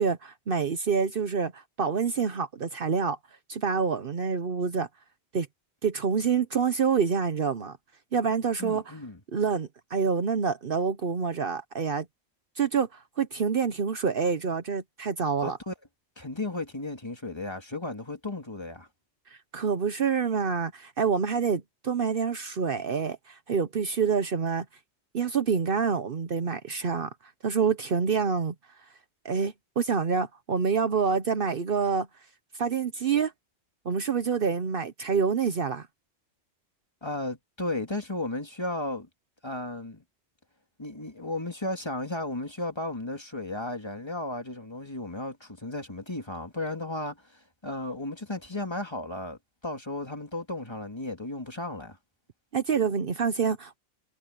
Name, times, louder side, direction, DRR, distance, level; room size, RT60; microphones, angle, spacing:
voice 1, 0.0-3.2 3.5-4.9 5.3-5.5 5.8-7.8 8.1-8.9 9.3-12.1 12.6-15.6 19.5-24.6 25.1-27.1 27.4-28.5 29.2-32.1 32.6-33.3 33.8-35.9 52.5-53.8, right 6 dB, 55° right, 1.0 m, -27 dB
voice 2, 8.6-9.2 15.4-15.7 16.2-18.9 37.0-39.1 39.4-40.0 40.8-52.0, left 2 dB, 25° left, 2.3 m, -34 dB
omnidirectional pair, 1.1 m